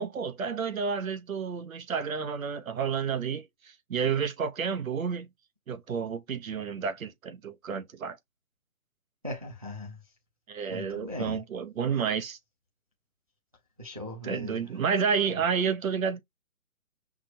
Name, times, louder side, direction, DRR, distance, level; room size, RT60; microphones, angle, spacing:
voice 1, 0.0-5.3 5.7-8.2 10.5-12.4 14.2-16.2, right 6 dB, 70° right, 0.8 m, -30 dB
voice 2, 9.2-10.0 10.7-11.4 13.8-14.6, left 2 dB, 25° right, 0.5 m, -38 dB
5.9 x 2.1 x 2.7 m
hypercardioid pair, 175°, 42 cm